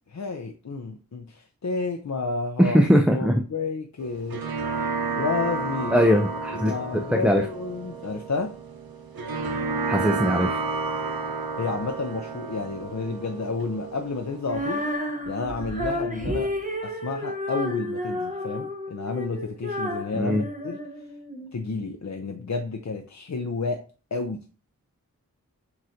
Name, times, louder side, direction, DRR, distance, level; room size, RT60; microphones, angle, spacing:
voice 1, 0.0-2.8 3.1-4.4 5.1-6.1 6.5-8.6 11.6-14.8 15.3-16.5 16.8-20.8 21.5-23.8 24.1-24.4, left 4 dB, 50° left, 3 dB, 0.5 m, -31 dB
voice 2, 2.6-3.4 5.9-7.5 9.9-10.6 20.1-20.4, equal, 5° right, 4 dB, 0.4 m, -21 dB
sound 1, 4.0-14.9, right 4 dB, 90° right, 0.6 m, -31 dB
Female singing, 14.4-21.5, equal, 20° right, 0.9 m, -31 dB
7.4 x 2.5 x 2.7 m, 0.37 s
wide cardioid pair, 45°, 35 cm